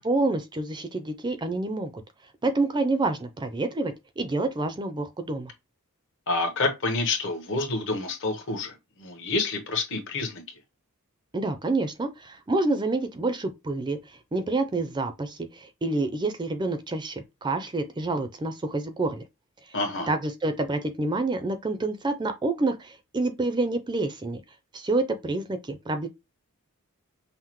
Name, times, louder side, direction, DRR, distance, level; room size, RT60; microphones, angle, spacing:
voice 1, 0.0-1.9 2.4-5.5 11.3-19.2 20.1-24.4 24.7-26.1, right 2 dB, 20° right, 0.4 m, -28 dB
voice 2, 6.3-10.4 19.7-20.1, left 3 dB, 55° left, 1.0 m, -28 dB
5.6 x 2.0 x 3.0 m
head